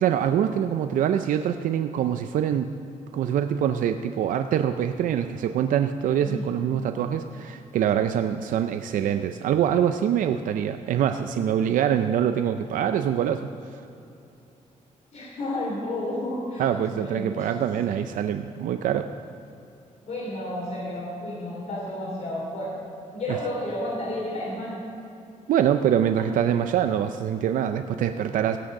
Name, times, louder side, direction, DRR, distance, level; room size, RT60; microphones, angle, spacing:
voice 1, 0.0-2.7 3.1-13.5 16.6-19.1 23.3-23.4 25.5-28.6, right 9 dB, 85° right, 8 dB, 0.4 m, -24 dB
voice 2, 15.1-18.0 20.0-24.8 26.1-26.3, left 1 dB, 55° left, -4 dB, 3.0 m, -32 dB
17.0 x 6.2 x 6.5 m, 2.7 s
cardioid pair, 110°, 13 cm